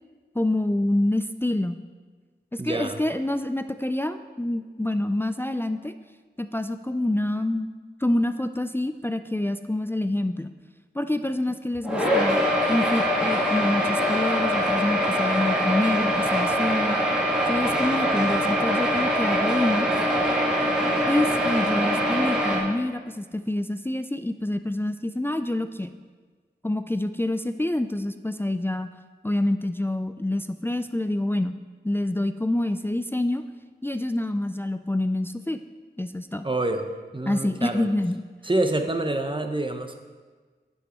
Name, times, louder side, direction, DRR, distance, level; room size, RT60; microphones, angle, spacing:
voice 1, 0.4-1.8 2.5-5.9 6.4-7.7 8.0-10.5 10.9-12.4 12.7-17.0 17.5-19.9 21.1-25.9 26.6-28.9 29.2-31.5 31.8-33.4 33.8-35.6 36.0-36.5 37.3-38.2, left 1 dB, 10° left, 9 dB, 0.4 m, -27 dB
voice 2, 2.6-3.0 36.4-37.9 38.4-39.9, right 2 dB, 30° right, 6 dB, 0.9 m, -27 dB
sound 1, 11.8-22.6, equal, 5° right, 2.7 m, -23 dB
10.0 x 7.4 x 4.4 m, 1.4 s
wide cardioid pair, 45°, 18 cm